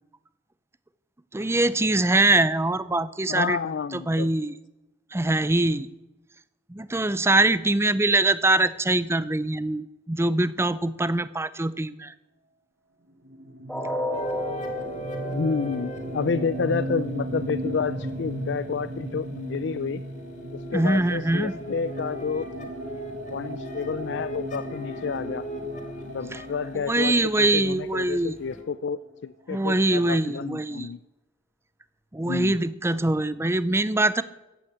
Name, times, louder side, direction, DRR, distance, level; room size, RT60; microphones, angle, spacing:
voice 1, 1.3-3.6 3.9-4.5 5.1-5.9 6.7-12.1 20.7-21.5 26.3-26.4 26.7-28.3 29.5-30.9 32.1-34.2, right 2 dB, 15° right, 16 dB, 0.5 m, -23 dB
voice 2, 3.3-4.3 15.3-20.0 20.7-22.7 23.3-25.4 26.1-31.0 32.2-32.6, left 5 dB, 65° left, 15 dB, 0.4 m, -30 dB
sound 1, 13.2-28.8, right 1 dB, 75° right, 1.5 m, -36 dB
sound 2, 13.7-19.7 20.1-20.2 20.7-20.8, equal, 5° left, 2.4 m, -35 dB
sound 3, 14.1-18.6 19.5-28.6, left 1 dB, 40° left, 2.2 m, -42 dB
14.5 x 8.6 x 8.6 m, 1.0 s
head